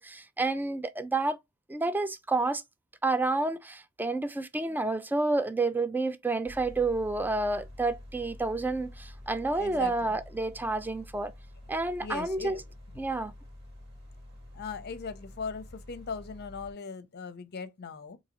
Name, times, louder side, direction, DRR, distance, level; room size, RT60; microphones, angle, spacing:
voice 1, 0.0-1.4 1.7-2.6 3.0-11.3 11.7-12.6 13.0-13.3, right 2 dB, 10° right, 0.3 m, -29 dB
sound 1, 6.5-16.7, left 1 dB, 55° right, 1.4 m, -48 dB
voice 2, 9.5-10.1 12.0-12.6 14.5-18.2, left 5 dB, 45° left, 0.6 m, -39 dB
3.9 x 2.7 x 2.9 m
head